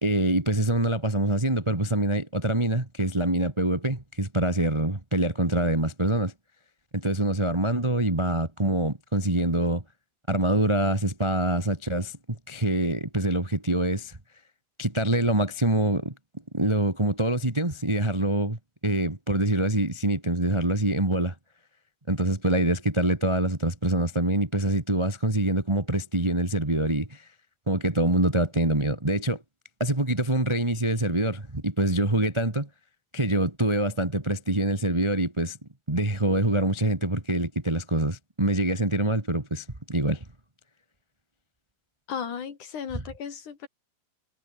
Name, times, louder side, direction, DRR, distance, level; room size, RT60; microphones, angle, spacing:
voice 1, 0.0-6.3 6.9-9.8 10.3-12.2 12.5-14.2 14.8-16.1 16.5-21.3 22.1-27.3 27.7-29.4 29.8-32.7 33.1-35.6 35.9-40.2, right 1 dB, 20° right, 0.8 m, -25 dB
voice 2, 42.1-43.7, left 7 dB, 60° left, 4.1 m, -35 dB
omnidirectional pair, 4.2 m